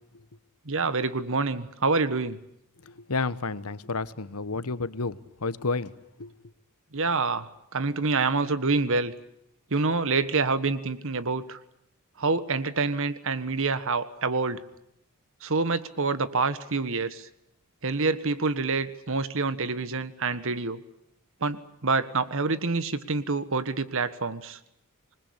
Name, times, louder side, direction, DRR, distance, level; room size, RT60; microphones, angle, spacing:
voice 1, 0.6-2.4 6.9-9.1 9.7-11.6 12.2-14.6 15.4-17.3 17.8-20.8 21.4-24.6, right 3 dB, 65° right, 13 dB, 1.5 m, -27 dB
voice 2, 2.8-6.3, left 3 dB, 85° left, 15 dB, 1.2 m, -31 dB
27.0 x 20.5 x 8.7 m, 0.77 s
head